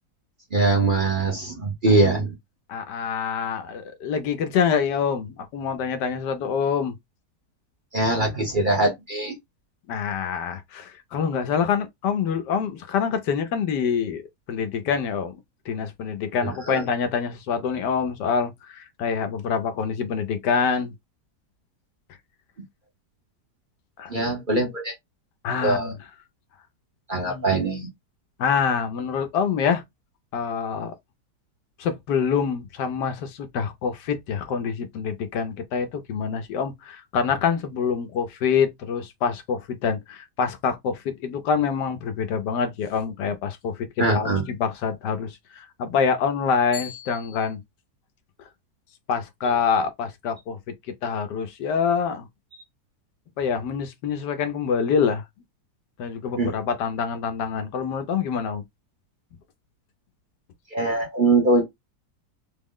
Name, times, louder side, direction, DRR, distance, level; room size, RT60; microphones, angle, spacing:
voice 1, 0.5-2.3 7.9-9.4 16.4-16.8 24.1-24.9 25.6-25.9 27.1-27.9 44.0-44.5 56.4-56.5 60.7-61.6, right 2 dB, 40° right, 0.8 m, -22 dB
voice 2, 2.7-7.0 9.9-14.2 14.5-15.3 15.7-20.9 24.0-24.1 25.4-26.0 27.3-27.5 28.4-29.8 30.3-30.9 31.8-47.6 49.1-50.6 51.0-52.3 53.4-55.2 56.0-58.6, left 6 dB, 80° left, 1.3 m, -26 dB
3.7 x 2.0 x 3.6 m
omnidirectional pair, 1.8 m